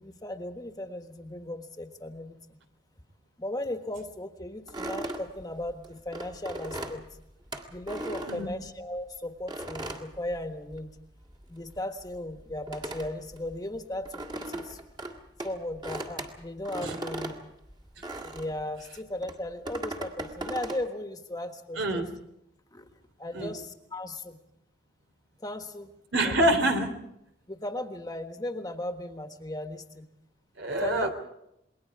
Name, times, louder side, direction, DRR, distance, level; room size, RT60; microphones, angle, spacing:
voice 1, 0.0-2.4 3.4-7.0 7.7-10.9 11.5-14.8 15.4-17.5 18.3-22.0 22.7-22.9 23.2-24.4 25.4-25.9 26.2-26.4 27.5-30.0 30.8-31.1, left 1 dB, 20° left, 6 dB, 1.4 m, -36 dB
sound 1, 4.7-9.0 9.5-11.0 11.2-18.6 19.2-20.9, right 1 dB, 25° right, 1.8 m, -38 dB
voice 2, 21.8-22.1 23.3-23.5 26.1-26.9 30.6-31.1, right 1 dB, 85° right, 6 dB, 3.1 m, -26 dB
28.0 x 21.5 x 4.7 m, 0.81 s
head